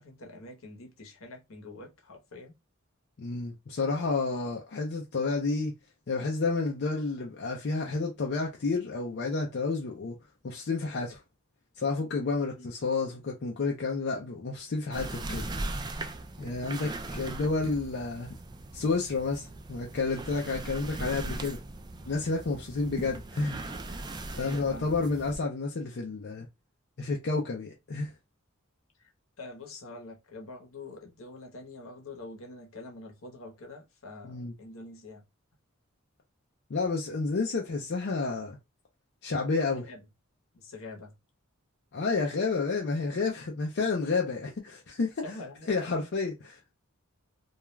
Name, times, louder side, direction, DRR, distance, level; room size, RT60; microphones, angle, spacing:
voice 1, 0.0-2.5 12.6-12.7 22.9-23.2 24.3-24.9 29.0-29.1 29.4-35.2 39.7-40.0 40.5-41.2 45.2-46.1, left 2 dB, 75° left, 0.9 m, -45 dB
voice 2, 3.2-5.7 6.1-10.2 10.4-11.2 11.8-15.5 16.4-18.3 18.7-21.6 22.1-23.6 23.9-24.0 24.4-26.5 27.0-28.1 34.2-34.5 36.7-38.6 39.2-39.9 41.9-45.3 45.7-46.6, left 3 dB, 55° left, 0.5 m, -30 dB
sound 1, 14.9-25.4, right 2 dB, 20° right, 0.3 m, -39 dB
2.3 x 2.2 x 3.1 m
head